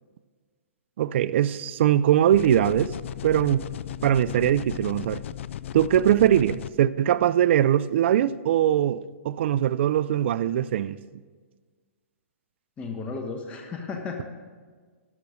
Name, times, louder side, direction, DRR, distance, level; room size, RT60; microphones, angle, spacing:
voice 1, 1.0-2.9 3.2-3.6 4.0-5.2 5.7-11.0, right 11 dB, 55° right, 0.4 m, -21 dB
sound 1, 2.3-6.7, left 11 dB, 60° left, 0.3 m, -36 dB
voice 2, 12.8-14.2, left 4 dB, 15° left, 1.1 m, -34 dB
12.0 x 6.7 x 6.2 m
hypercardioid pair, 140°, 7 cm